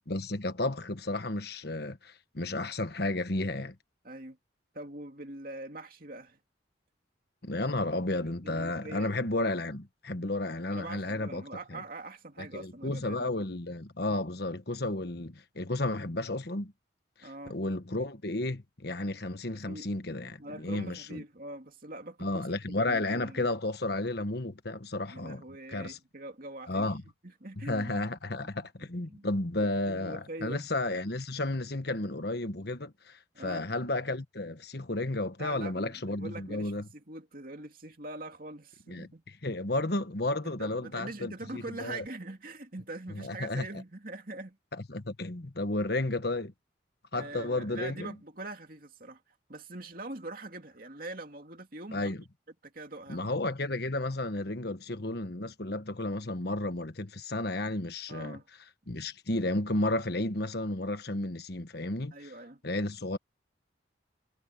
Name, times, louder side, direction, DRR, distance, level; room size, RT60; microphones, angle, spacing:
voice 1, 0.1-3.8 7.4-11.4 11.7-11.8 12.4-16.7 17.2-21.2 22.2-25.4 25.7-26.0 26.7-27.0 27.6-36.8 38.9-39.1 39.4-42.0 43.1-43.7 44.9-46.5 47.1-48.1 51.9-52.2 53.1-58.4 58.9-62.3 62.6-63.2, left 2 dB, 55° left, 1.4 m, -32 dB
voice 2, 4.0-4.4 4.7-6.4 8.2-9.1 10.7-13.3 17.2-17.5 19.7-19.9 20.4-23.5 25.1-26.9 27.2-28.1 28.4-29.3 29.6-30.7 33.3-33.7 35.4-39.2 40.4-44.6 47.1-49.2 49.5-52.1 52.6-53.2 58.1-58.5 62.1-62.6, right 2 dB, 45° right, 2.6 m, -43 dB
head